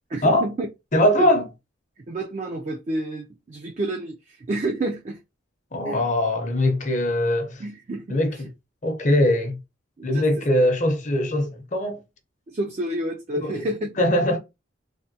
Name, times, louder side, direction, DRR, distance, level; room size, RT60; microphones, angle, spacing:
voice 1, 0.1-0.7 1.2-1.3 2.0-5.2 5.9-6.1 7.6-8.2 10.0-10.4 12.5-14.0, right 1 dB, 35° right, 0.3 m, -29 dB
voice 2, 0.9-1.5 5.7-7.6 8.1-8.4 8.8-9.6 10.0-12.0 13.4-13.7 14.0-14.4, left 1 dB, 40° left, 0.7 m, -21 dB
3.3 x 2.2 x 2.7 m
head